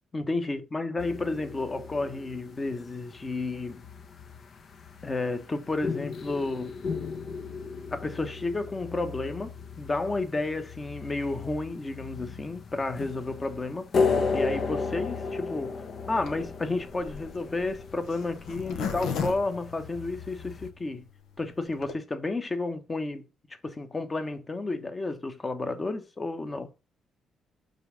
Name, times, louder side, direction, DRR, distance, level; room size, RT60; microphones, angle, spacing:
voice 1, 0.1-3.8 5.0-6.8 7.9-21.0 21.4-23.3 23.6-26.7, left 2 dB, 25° left, 1.2 m, -32 dB
sound 1, 1.0-20.7, left 4 dB, 55° left, 1.0 m, -35 dB
Zipper (clothing), 16.2-20.5 21.0-21.1 21.3-21.4 21.6-21.9, left 6 dB, 85° left, 1.1 m, -35 dB
5.6 x 3.6 x 5.2 m
cardioid pair, 90°, 0 cm